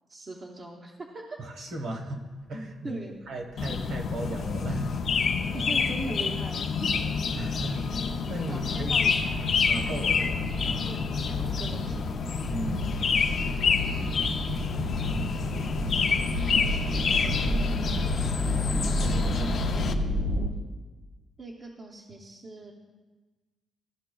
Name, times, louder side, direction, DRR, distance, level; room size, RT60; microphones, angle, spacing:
voice 1, 0.1-1.4 2.8-3.2 5.3-6.9 8.5-9.2 10.8-12.0 21.4-22.7, right 2 dB, 25° right, -1 dB, 0.6 m, -40 dB
voice 2, 1.4-2.2 2.5-5.7 6.9-9.1 9.7-10.9 12.5-13.2 14.0-15.8 17.2-18.3 19.0-19.7 20.0-20.2, right 1 dB, 55° right, 3 dB, 1.0 m, -38 dB
sound 1, 3.6-19.9, left 5 dB, 45° left, 0.4 m, -28 dB
sound 2, 5.4-20.5, equal, 70° right, 1.3 m, -32 dB
13.0 x 5.6 x 2.3 m, 1.3 s
cardioid pair, 180°, 0 cm